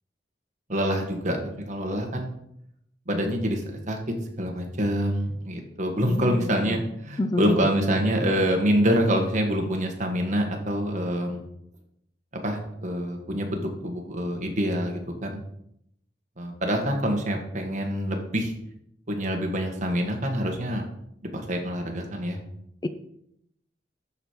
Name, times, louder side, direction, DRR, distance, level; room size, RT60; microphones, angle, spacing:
voice 1, 0.7-2.3 3.1-4.0 4.4-11.4 12.4-15.4 16.4-18.5 19.1-20.8 21.3-22.4, equal, 45° right, 2 dB, 1.8 m, -26 dB
voice 2, 6.1-6.8 7.2-7.6 22.8-22.9, left 1 dB, 25° left, 10 dB, 0.5 m, -28 dB
12.5 x 5.1 x 4.6 m, 0.75 s
head